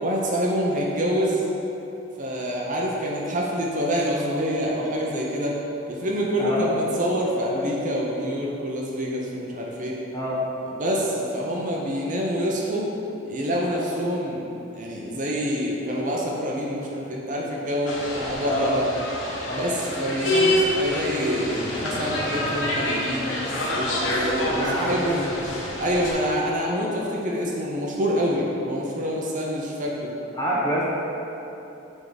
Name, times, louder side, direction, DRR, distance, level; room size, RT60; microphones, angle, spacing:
voice 1, 0.0-1.4 2.2-5.6 5.9-10.0 10.7-12.9 13.2-14.4 14.7-18.8 19.5-23.3 23.7-25.2 25.8-30.1, equal, 45° right, -2 dB, 0.7 m, -26 dB
voice 2, 6.4-6.7 10.1-10.4 18.4-18.8 19.5-19.7 24.6-25.4 30.3-30.8, equal, 20° left, -7 dB, 1.3 m, -26 dB
sound 1, 17.9-26.1, left 1 dB, 70° left, 1.1 m, -27 dB
8.8 x 3.6 x 4.0 m, 3.0 s
head